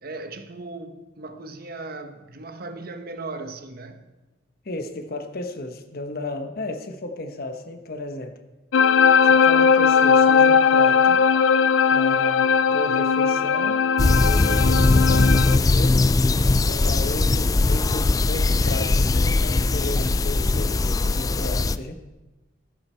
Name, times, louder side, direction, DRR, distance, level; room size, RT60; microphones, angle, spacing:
voice 1, 0.0-4.0, right 3 dB, 55° right, 1.0 m, -37 dB
voice 2, 4.6-8.4 9.2-11.3 11.9-16.0 16.5-22.0, left 1 dB, 55° left, 1.1 m, -34 dB
sound 1, 8.7-15.6, left 6 dB, 90° left, 0.5 m, -18 dB
sound 2, 14.0-21.8, left 3 dB, 20° left, 0.3 m, -20 dB
14.0 x 11.5 x 4.5 m
head